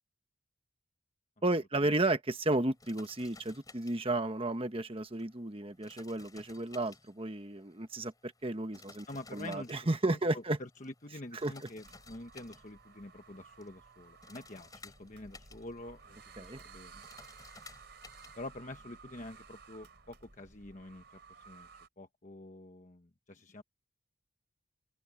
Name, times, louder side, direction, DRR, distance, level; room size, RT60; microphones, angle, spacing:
voice 1, 1.4-9.1 9.3-10.6 11.4-11.5 16.4-16.6, right 2 dB, 25° right, 1.2 m, -33 dB
sound 1, 2.6-18.4, left 3 dB, 20° left, 4.5 m, -58 dB
voice 2, 9.1-17.0 18.4-21.0 21.5-21.7 22.0-23.6, left 2 dB, 35° left, 1.1 m, -47 dB
sound 2, 11.8-21.9, right 5 dB, 55° right, 4.4 m, -56 dB
open air
head